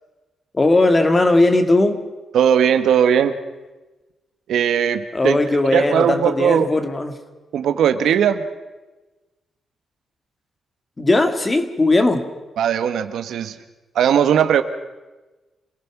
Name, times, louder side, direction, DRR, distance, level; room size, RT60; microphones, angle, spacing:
voice 1, 0.5-2.0 5.1-7.2 11.0-12.3, left 2 dB, 25° left, 7 dB, 2.1 m, -18 dB
voice 2, 2.3-3.3 4.5-5.4 5.7-6.7 7.5-8.4 12.6-13.6 13.9-14.6, right 8 dB, 90° right, 9 dB, 1.4 m, -18 dB
28.0 x 18.0 x 6.0 m, 1.2 s
cardioid pair, 115°, 0 cm